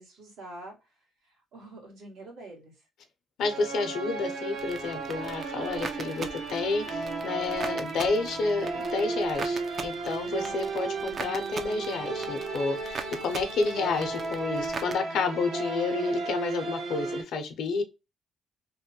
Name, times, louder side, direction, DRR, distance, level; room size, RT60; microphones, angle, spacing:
voice 1, 0.0-2.8, right 2 dB, 85° right, 1.6 m, -46 dB
voice 2, 3.4-17.8, left 4 dB, 75° left, 0.7 m, -30 dB
sound 1, 3.4-17.2, right 3 dB, 70° right, 0.8 m, -34 dB
sound 2, 4.6-14.9, right 4 dB, 50° right, 0.5 m, -41 dB
3.1 x 2.2 x 2.8 m
cardioid pair, 90°, 0 cm